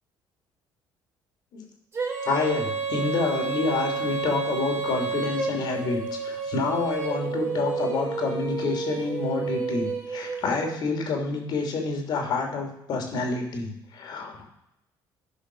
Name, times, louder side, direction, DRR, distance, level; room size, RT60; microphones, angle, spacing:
Female singing, 1.9-10.7, right 5 dB, 30° right, 3.3 m, -30 dB
voice 1, 2.2-14.5, left 4 dB, 55° left, 3 dB, 2.8 m, -28 dB
11.5 x 5.5 x 6.2 m, 0.85 s
cardioid pair, 135°, 9 cm